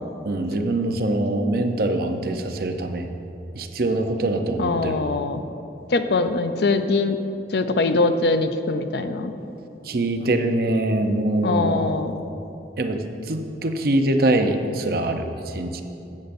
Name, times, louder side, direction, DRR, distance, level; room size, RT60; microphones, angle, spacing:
voice 1, 0.2-3.1 3.6-5.0 9.8-12.0 12.8-15.8, right 1 dB, 55° right, 6 dB, 0.6 m, -23 dB
voice 2, 4.6-5.4 5.9-7.2 7.5-9.3 11.4-12.2, left 3 dB, 65° left, 9 dB, 0.5 m, -22 dB
14.0 x 8.3 x 2.6 m, 2.9 s
head